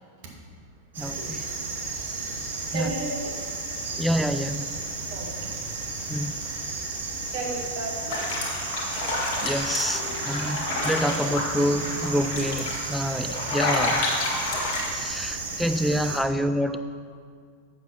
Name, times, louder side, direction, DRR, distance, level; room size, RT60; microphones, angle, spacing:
sound 1, 0.9-16.2, right 3 dB, 65° right, 1.2 m, -33 dB
voice 1, 1.0-1.4 2.7-2.9 4.0-4.7 6.1-6.4 9.4-14.1 14.9-16.8, equal, ahead, 10 dB, 0.3 m, -27 dB
voice 2, 2.7-3.3 5.1-5.3 6.7-6.9 7.3-8.3 9.9-10.5 11.8-11.9 13.0-13.1 14.3-14.4, right 2 dB, 45° right, -1 dB, 1.6 m, -34 dB
sound 2, 8.1-14.9, left 2 dB, 45° left, 1.6 m, -29 dB
7.9 x 5.5 x 5.5 m, 2.1 s
figure-of-eight pair, 90°, 0 cm